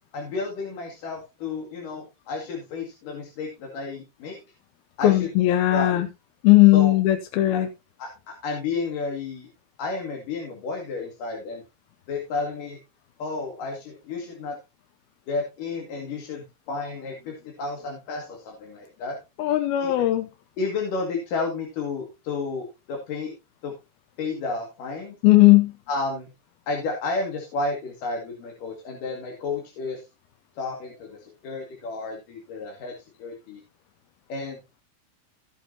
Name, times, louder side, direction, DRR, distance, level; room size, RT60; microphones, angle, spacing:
voice 1, 0.1-4.4 5.0-5.3 5.7-6.0 6.7-7.0 8.0-9.5 9.8-11.6 12.1-12.8 13.2-14.6 15.3-19.2 19.8-20.1 20.6-23.3 23.6-23.7 24.2-25.2 25.9-26.3 26.7-30.0 30.6-33.6 34.3-34.6, left 3 dB, 65° left, 3.7 m, -32 dB
voice 2, 5.0-6.1 6.4-7.7 19.4-20.3 25.2-25.7, left 16 dB, 85° left, 2.7 m, -17 dB
16.5 x 7.4 x 2.8 m
omnidirectional pair, 4.3 m